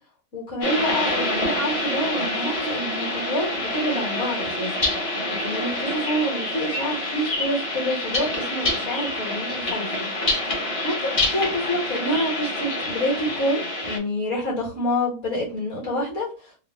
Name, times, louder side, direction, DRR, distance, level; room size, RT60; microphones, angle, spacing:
voice 1, 0.3-4.9 5.4-10.1 10.5-16.3, equal, 60° left, -5 dB, 1.9 m, -27 dB
sound 1, 0.6-14.0, left 1 dB, 40° left, 0.5 m, -27 dB
3.6 x 2.4 x 2.4 m, 0.35 s
omnidirectional pair, 1.5 m